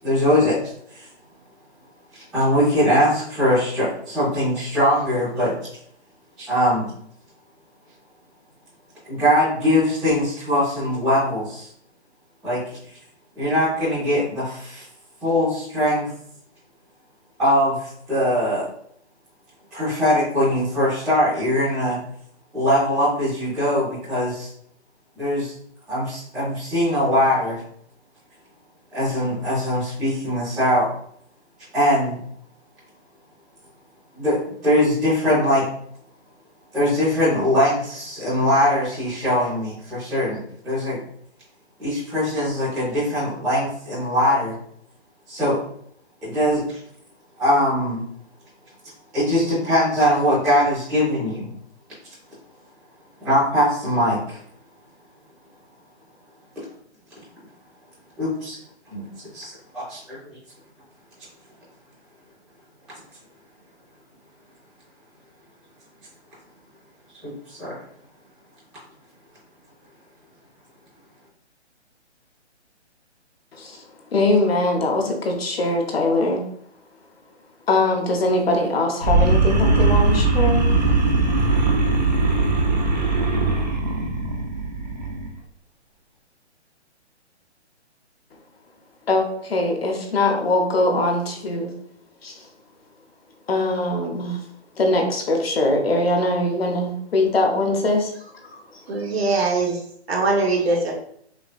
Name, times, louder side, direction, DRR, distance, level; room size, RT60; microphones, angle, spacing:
voice 1, 0.0-0.6 0.9-1.0 2.3-5.5 6.4-6.9 9.0-11.7 12.4-12.6 13.3-14.8 15.2-16.1 17.4-18.6 19.7-22.0 22.5-24.5 25.1-25.5 25.9-27.6 28.9-30.9 31.7-32.2 34.1-34.4 34.6-35.7 36.7-40.4 40.6-41.0 41.8-44.5 45.3-45.6 46.2-46.6 47.4-48.0 49.1-51.5 53.2-54.4 58.2-58.6 58.9-59.1 59.3-60.2 67.2-67.7, left 1 dB, ahead, -19 dB, 0.7 m, -21 dB
voice 2, 73.5-73.8 74.1-76.4 77.7-80.6 89.1-91.7 92.2-92.5 93.5-94.4 94.8-98.1 98.5-98.6, left 2 dB, 60° left, 3 dB, 0.9 m, -22 dB
sound 1, 79.0-85.3, right 3 dB, 40° right, 0.5 m, -20 dB
voice 3, 98.9-99.8 100.1-100.9, right 3 dB, 60° right, 0 dB, 1.2 m, -21 dB
5.7 x 2.1 x 2.4 m, 0.66 s
hypercardioid pair, 175°, 35 cm